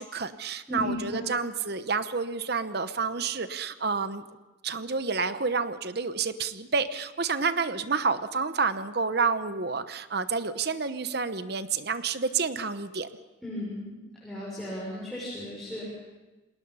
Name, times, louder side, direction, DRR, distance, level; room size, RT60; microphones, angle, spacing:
voice 1, 0.0-4.2 4.6-13.1, right 4 dB, 50° right, 11 dB, 1.0 m, -29 dB
voice 2, 0.7-1.3 13.4-13.9 14.2-15.9, left 1 dB, ahead, -8 dB, 6.4 m, -35 dB
29.0 x 20.0 x 5.6 m, 1.1 s
head